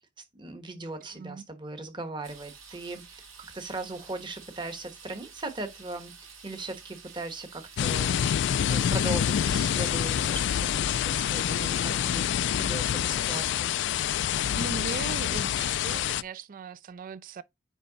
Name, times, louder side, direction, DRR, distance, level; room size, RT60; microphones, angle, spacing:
voice 1, 0.3-3.2 3.5-8.3 8.7-13.7, right 2 dB, 25° right, 1.2 m, -38 dB
voice 2, 1.1-1.4 14.5-17.4, right 5 dB, 45° right, 0.3 m, -39 dB
sound 1, 2.2-10.5, right 6 dB, 85° right, 2.3 m, -49 dB
sound 2, 7.8-16.2, left 9 dB, 65° left, 0.3 m, -27 dB
9.6 x 3.2 x 4.0 m
head